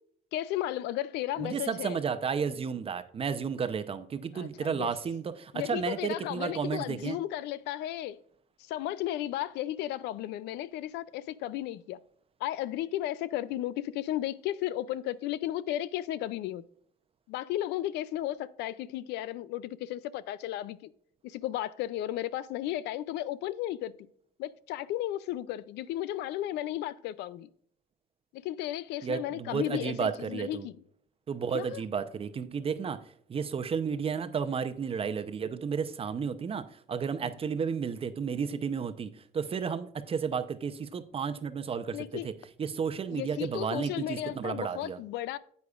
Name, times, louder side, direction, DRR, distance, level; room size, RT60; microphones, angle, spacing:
voice 1, 0.3-2.0 4.3-4.9 5.5-8.2 8.6-12.0 12.4-16.6 17.3-20.9 21.2-23.9 24.4-27.5 28.3-30.7 31.5-31.8 37.2-37.3 41.9-42.3 43.1-45.4, left 13 dB, 85° left, 0.5 m, -34 dB
voice 2, 1.4-7.2 29.0-30.7 31.3-33.0 33.3-42.3 42.6-45.0, right 6 dB, 35° right, 0.7 m, -32 dB
9.5 x 8.2 x 2.5 m
cardioid pair, 110°, 17 cm